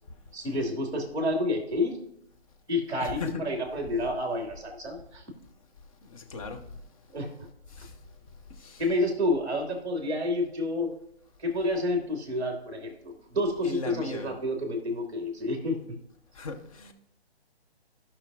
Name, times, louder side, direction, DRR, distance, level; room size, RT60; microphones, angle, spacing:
voice 1, 0.3-1.9 2.7-5.2 7.1-7.3 8.8-10.9 11.4-15.8, left 1 dB, 10° right, 1.8 m, -29 dB
voice 2, 3.0-3.4 6.0-6.7 7.7-7.9 8.6-8.8 13.6-14.4 16.3-16.9, left 3 dB, 30° left, 0.9 m, -37 dB
16.5 x 5.8 x 2.4 m
figure-of-eight pair, 145°, 33 cm